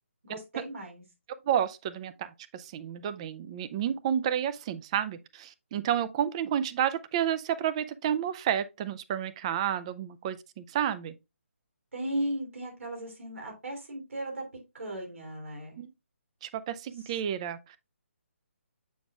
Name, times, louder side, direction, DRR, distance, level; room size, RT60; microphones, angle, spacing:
voice 1, 0.2-1.0 11.9-14.4 14.7-15.8 17.1-17.2, right 1 dB, 70° right, 3.1 m, -36 dB
voice 2, 1.4-11.1 15.8-15.9 16.4-17.8, right 9 dB, 25° right, 0.4 m, -31 dB
7.1 x 5.9 x 2.3 m
figure-of-eight pair, 145°, 7 cm